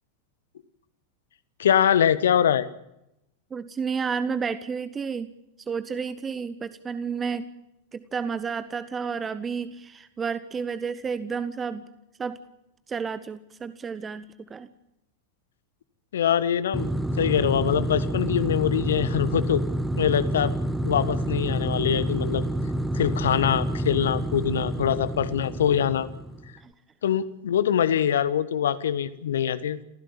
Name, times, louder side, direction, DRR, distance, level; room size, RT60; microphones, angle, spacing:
voice 1, 1.6-2.7 16.1-19.6 20.0-20.5 20.8-22.4 22.9-26.1 27.0-29.8, left 9 dB, 65° left, 15 dB, 1.3 m, -23 dB
voice 2, 3.5-5.3 5.7-7.5 7.9-11.8 12.2-12.4 12.9-14.7 26.6-26.7, right 6 dB, 20° right, 14 dB, 1.0 m, -31 dB
sound 1, 16.7-26.5, right 1 dB, ahead, 1.2 m, -28 dB
29.0 x 15.5 x 7.4 m, 0.84 s
figure-of-eight pair, 90°, 0 cm